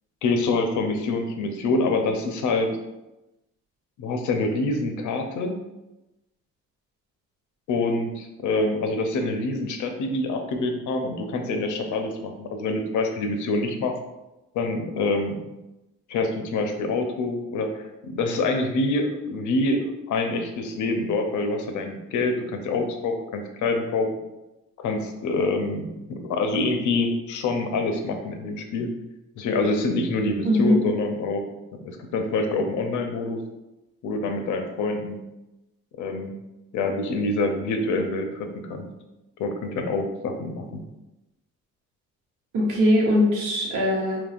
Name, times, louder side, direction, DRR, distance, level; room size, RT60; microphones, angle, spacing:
voice 1, 0.2-2.7 4.0-5.6 7.7-13.9 14.5-15.4 16.1-24.1 24.8-28.9 29.4-31.5 31.8-33.4 34.0-35.2 36.0-36.3 36.7-38.9 39.4-40.8, left 3 dB, 75° left, 5 dB, 0.7 m, -26 dB
voice 2, 30.4-30.8 42.5-44.2, left 1 dB, 85° right, -3 dB, 1.0 m, -20 dB
5.2 x 3.1 x 2.4 m, 0.98 s
cardioid pair, 90°, 30 cm